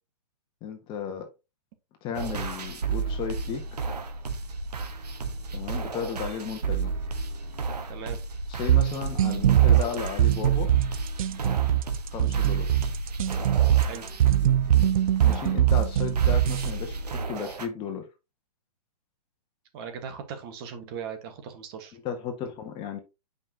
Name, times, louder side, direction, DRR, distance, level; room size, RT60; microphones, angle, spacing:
voice 1, 0.6-1.3 2.0-3.6 5.5-6.9 8.5-10.7 12.1-12.7 15.2-17.0 17.3-18.1 21.9-23.0, left 7 dB, 25° left, 1.4 m, -34 dB
sound 1, 2.1-17.7, right 5 dB, 85° right, 1.4 m, -32 dB
voice 2, 7.9-8.2 13.8-14.1 19.7-22.0, right 7 dB, 40° right, 1.6 m, -38 dB
sound 2, 8.7-16.7, right 12 dB, 60° right, 0.5 m, -22 dB
7.2 x 5.4 x 2.9 m
hypercardioid pair, 140°, 20 cm